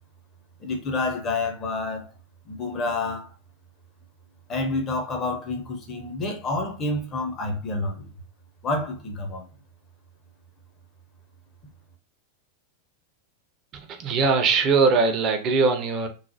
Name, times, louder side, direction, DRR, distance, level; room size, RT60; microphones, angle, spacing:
voice 1, 0.6-2.1 2.5-3.3 4.5-8.1 8.6-9.4, left 2 dB, 25° left, 0.7 m, -28 dB
voice 2, 13.7-16.1, right 4 dB, 35° right, 0.5 m, -21 dB
3.1 x 2.0 x 2.6 m
figure-of-eight pair, 90°, 0 cm